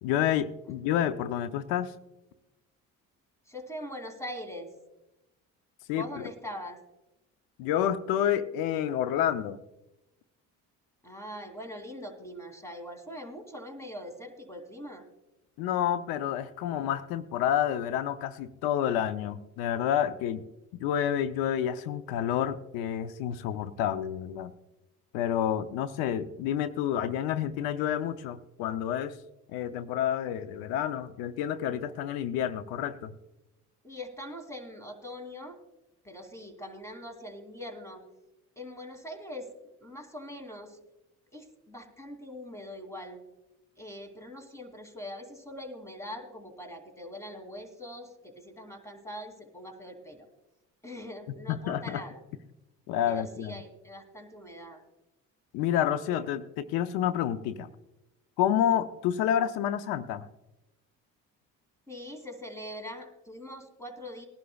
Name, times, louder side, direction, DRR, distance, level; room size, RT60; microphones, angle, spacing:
voice 1, 0.0-1.9 5.9-6.2 7.6-9.6 15.6-20.4 20.7-24.5 25.1-29.2 29.5-33.1 51.5-52.0 52.9-53.6 55.5-57.7 58.4-60.3, left 10 dB, 90° left, 12 dB, 0.7 m, -29 dB
voice 2, 3.5-4.7 5.9-6.8 11.0-15.0 33.8-35.6 36.0-38.0 38.6-39.5 39.8-40.8 41.3-43.2 43.8-50.3 50.8-52.2 53.1-54.8 61.9-64.3, equal, 10° left, 5 dB, 2.8 m, -42 dB
20.0 x 11.5 x 2.3 m, 0.94 s
supercardioid pair, 80°, 35 cm